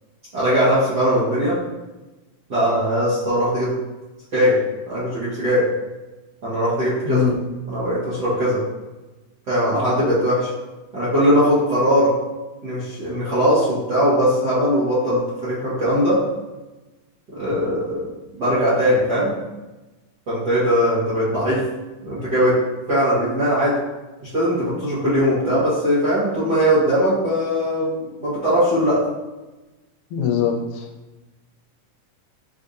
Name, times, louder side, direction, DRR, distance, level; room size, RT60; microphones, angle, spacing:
voice 1, 0.3-1.6 2.5-3.7 4.3-4.6 4.9-5.6 6.4-7.2 7.7-8.6 9.5-10.5 10.9-12.1 12.6-16.2 17.3-18.0 18.4-19.3 20.3-21.6 22.0-22.5 22.9-23.7 24.2-29.0, equal, 60° right, -12 dB, 1.1 m, -20 dB
voice 2, 7.1-7.4 30.1-30.9, left 8 dB, 85° left, 2 dB, 2.0 m, -21 dB
6.7 x 2.7 x 2.5 m, 1.1 s
omnidirectional pair, 3.7 m